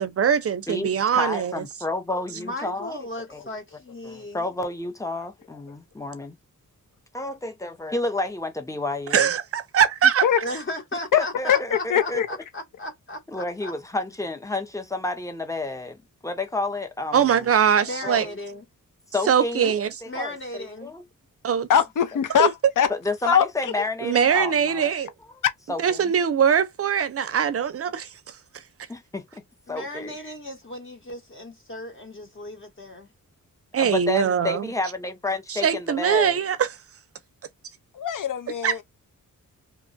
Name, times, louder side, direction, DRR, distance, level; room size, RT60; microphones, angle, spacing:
voice 1, 0.0-1.6 9.1-10.3 17.1-18.3 19.3-19.9 21.4-21.7 22.4-22.5 24.0-25.1 25.8-28.1 33.7-34.7 35.5-36.7 38.6-38.8, right 8 dB, 45° right, 0.5 m, -22 dB
voice 2, 0.7-3.0 3.3-3.4 4.0-6.4 7.1-9.3 11.1-12.2 13.3-17.5 18.0-18.4 19.1-19.7 20.0-21.0 22.9-25.0 25.3-25.4 25.7-26.1 28.9-30.1 33.8-36.4, left 2 dB, 10° left, 0.6 m, -30 dB
voice 3, 2.3-4.4 10.4-13.7 17.8-18.6 20.1-21.0 29.7-33.1, left 1 dB, 35° left, 1.0 m, -36 dB
voice 4, 11.5-12.3 21.7-22.9 23.2-23.5 25.4-25.5 37.9-38.8, left 8 dB, 65° left, 0.7 m, -21 dB
2.9 x 2.2 x 2.6 m
wide cardioid pair, 125°, 34 cm